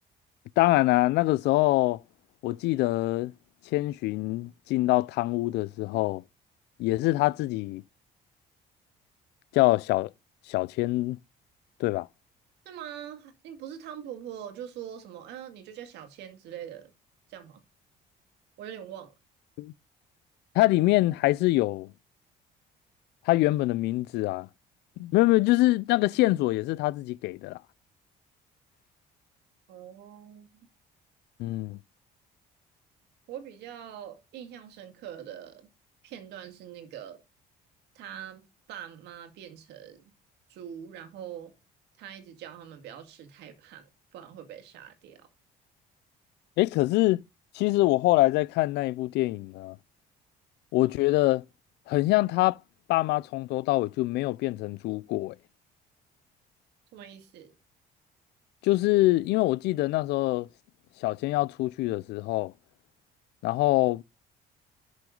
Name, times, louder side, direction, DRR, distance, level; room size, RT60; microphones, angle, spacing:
voice 1, 0.6-2.0 2.4-3.3 3.7-6.2 6.8-7.8 9.5-10.1 10.5-11.2 11.8-12.1 19.6-19.7 20.5-21.9 23.3-24.5 25.0-27.6 31.4-31.8 46.6-47.2 47.5-49.8 50.7-51.4 51.9-52.6 52.9-55.4 58.6-60.5 61.0-62.5 63.4-64.0, left 18 dB, 80° left, 0.4 m, -24 dB
voice 2, 12.7-16.9 17.3-17.6 18.6-19.1 29.7-30.5 33.3-35.7 36.0-37.2 37.9-40.1 40.5-41.5 42.0-45.3 56.9-57.5, right 9 dB, 85° right, 2.2 m, -43 dB
11.5 x 6.3 x 3.8 m
cardioid pair, 110°, 17 cm